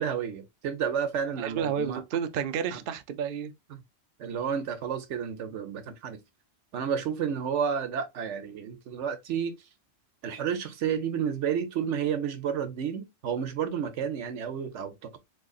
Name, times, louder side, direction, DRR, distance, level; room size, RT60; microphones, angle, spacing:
voice 1, 0.0-2.0 2.7-2.8 3.7-3.8 4.2-6.2 6.7-9.5 10.2-15.2, right 7 dB, 80° right, 1.0 m, -31 dB
voice 2, 1.4-3.5, right 8 dB, 60° right, 0.6 m, -31 dB
3.7 x 3.2 x 2.3 m
omnidirectional pair, 1.2 m